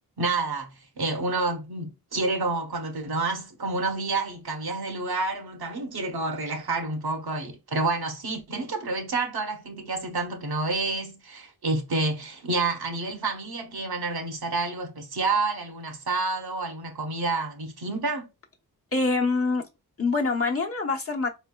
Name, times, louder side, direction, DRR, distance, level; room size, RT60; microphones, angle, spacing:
voice 1, 0.2-18.3, right 3 dB, 70° right, 1.1 m, -29 dB
voice 2, 18.9-19.6 20.0-21.3, left 3 dB, 35° left, 1.0 m, -25 dB
4.2 x 3.3 x 2.3 m
cardioid pair, 60°, 39 cm